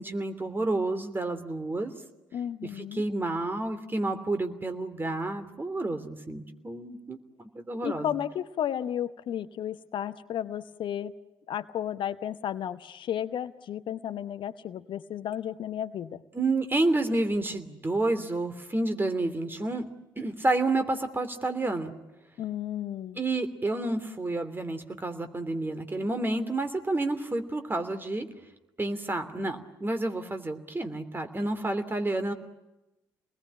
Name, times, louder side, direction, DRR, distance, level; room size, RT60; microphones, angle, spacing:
voice 1, 0.0-1.9 2.6-7.2 7.5-8.1 16.3-19.9 20.2-21.9 23.2-28.3 28.8-32.3, right 2 dB, 20° right, 8 dB, 3.0 m, -29 dB
voice 2, 2.3-3.0 7.8-11.1 11.5-16.2 22.4-23.2, left 10 dB, 55° left, 13 dB, 0.9 m, -33 dB
28.0 x 20.5 x 10.0 m, 1.0 s
hypercardioid pair, 50°, 10 cm